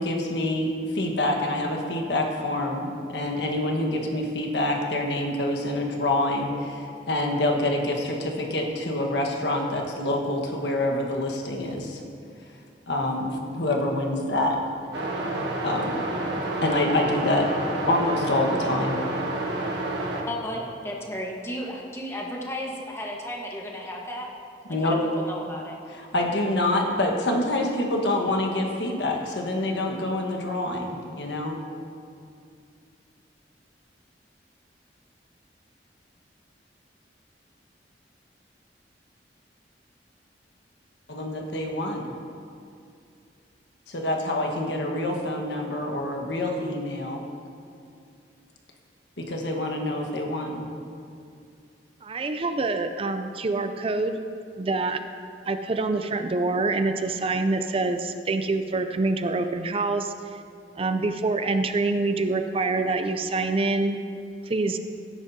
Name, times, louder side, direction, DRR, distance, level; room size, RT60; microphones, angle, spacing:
voice 1, 0.0-12.0 12.9-14.6 15.6-16.0 16.6-17.5 17.9-19.0 24.7-25.0 25.9-31.5 41.1-42.1 43.9-47.2 49.2-50.6, left 1 dB, 80° left, 1 dB, 1.4 m, -26 dB
sound 1, 14.9-20.2, right 2 dB, 85° right, 1.5 m, -29 dB
voice 2, 20.3-24.3 24.8-25.8, equal, 15° left, -2 dB, 1.3 m, -34 dB
voice 3, 52.0-54.2 54.6-55.0 55.5-60.4 60.7-64.0 64.5-64.8, right 3 dB, 30° right, 8 dB, 0.4 m, -26 dB
16.5 x 9.6 x 2.8 m, 2.4 s
head